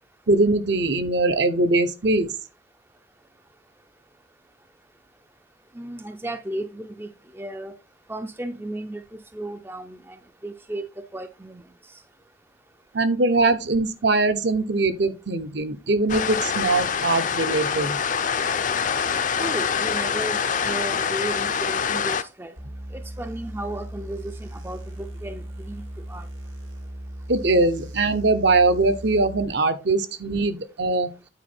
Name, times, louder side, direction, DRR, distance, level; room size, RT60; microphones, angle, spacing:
voice 1, 0.3-2.3 12.9-18.0 27.3-31.1, right 2 dB, 60° right, 0.9 m, -21 dB
voice 2, 5.8-7.7 8.1-10.2 10.4-10.8 11.1-11.6 19.4-22.5 22.9-26.3, right 1 dB, 10° right, 0.4 m, -34 dB
sound 1, 16.1-22.2, left 6 dB, 40° left, 0.5 m, -25 dB
sound 2, 22.6-29.4, equal, 90° right, 2.5 m, -38 dB
9.2 x 4.7 x 4.3 m
head